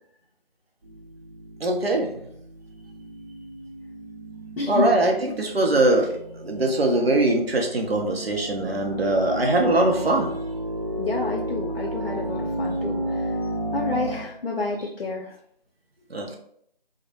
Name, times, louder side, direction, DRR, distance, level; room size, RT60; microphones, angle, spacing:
sound 1, 0.8-14.3, right 1 dB, 40° right, 1.0 m, -33 dB
voice 1, 1.6-2.1 4.7-10.3 16.1-16.4, right 2 dB, 80° right, 2 dB, 0.7 m, -22 dB
voice 2, 4.6-5.0 11.0-13.4 13.7-15.3, left 3 dB, 75° left, -1 dB, 0.5 m, -29 dB
2.1 x 2.0 x 2.9 m, 0.67 s
figure-of-eight pair, 170°, 29 cm